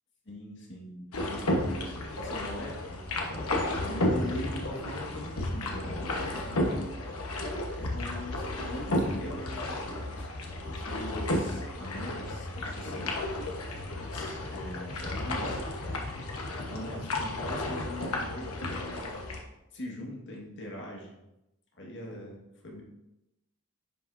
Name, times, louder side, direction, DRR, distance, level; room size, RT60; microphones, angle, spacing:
voice 1, 0.3-6.7 7.7-10.3 10.7-13.2 14.1-15.6 16.5-19.2 19.7-21.2 21.7-22.8, left 1 dB, 60° left, 0 dB, 1.8 m, -41 dB
sound 1, 1.1-19.4, left 1 dB, 80° left, 1.2 m, -33 dB
sound 2, 5.9-17.9, left 2 dB, 35° left, 0.6 m, -44 dB
10.5 x 5.8 x 2.7 m, 0.92 s
head